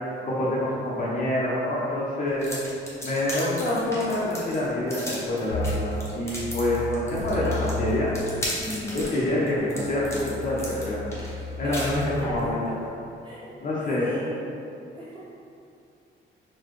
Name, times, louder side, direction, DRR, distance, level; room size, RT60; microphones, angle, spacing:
voice 1, 0.2-2.6 3.0-8.1 8.6-11.0 11.6-12.6 13.6-14.1, left 1 dB, 45° left, -7 dB, 0.8 m, -26 dB
sound 1, 2.4-12.4, equal, 15° left, 0.9 m, -36 dB
sound 2, 5.5-8.4 9.0-12.2, left 2 dB, 70° right, 1.2 m, -34 dB
voice 2, 8.6-9.1 11.6-11.7 12.0-12.6 13.2-13.6 13.9-14.4 14.9-15.2, equal, 25° right, -10 dB, 1.5 m, -38 dB
4.1 x 2.2 x 3.1 m, 2.6 s
cardioid pair, 90°, 20 cm